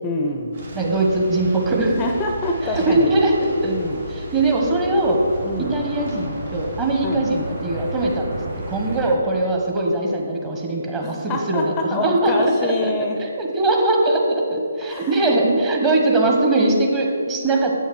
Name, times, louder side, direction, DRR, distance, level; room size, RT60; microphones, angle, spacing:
voice 1, 0.0-0.6 2.0-3.1 3.6-4.0 5.4-5.8 7.0-7.3 11.0-13.2 14.8-15.2, left 2 dB, 15° left, 3 dB, 0.6 m, -26 dB
sound 1, 0.5-9.1, right 1 dB, 60° right, 2.6 m, -33 dB
voice 2, 0.7-1.9 2.7-3.7 4.1-5.2 5.6-8.4 8.7-12.9 13.4-17.8, right 2 dB, 15° right, 0 dB, 1.3 m, -21 dB
8.1 x 6.4 x 6.3 m, 2.4 s
figure-of-eight pair, 145°, 0 cm